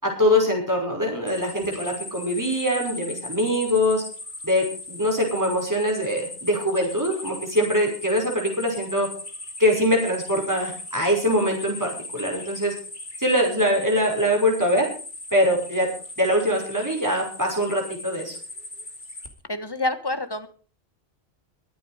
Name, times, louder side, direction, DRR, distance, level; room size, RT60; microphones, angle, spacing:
voice 1, 0.0-4.0 4.4-9.1 9.6-12.7 13.2-14.9 15.3-15.9 16.2-18.4, equal, 15° right, 0 dB, 5.9 m, -23 dB
sound 1, 1.3-19.3, left 2 dB, 45° left, 2.7 m, -38 dB
voice 2, 19.5-20.5, left 2 dB, 20° left, 10 dB, 1.4 m, -27 dB
23.0 x 8.8 x 5.0 m, 0.40 s
omnidirectional pair, 1.1 m